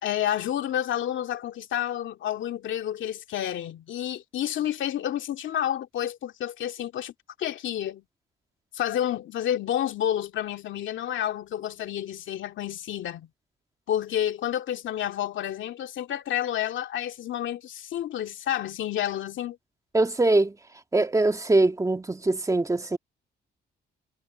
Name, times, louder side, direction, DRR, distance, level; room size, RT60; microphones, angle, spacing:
voice 1, 0.0-7.1 7.4-8.0 8.7-13.3 13.9-19.6, left 11 dB, 75° left, 2.4 m, -30 dB
voice 2, 19.9-20.6 20.9-23.0, right 2 dB, 15° right, 1.9 m, -22 dB
cardioid pair, 90°, 20 cm